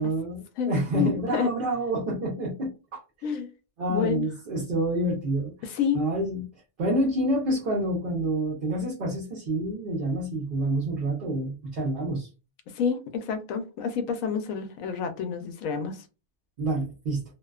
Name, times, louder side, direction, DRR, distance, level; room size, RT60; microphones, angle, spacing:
voice 1, 0.0-3.0 3.8-5.5 5.9-6.4 6.8-12.3 16.6-17.2, right 1 dB, 50° right, -4 dB, 0.8 m, -28 dB
voice 2, 0.6-1.5 3.2-3.5 3.9-4.3 5.6-6.0 12.7-16.0, left 6 dB, 85° left, 8 dB, 1.0 m, -29 dB
2.6 x 2.1 x 2.3 m, 0.30 s
omnidirectional pair, 1.4 m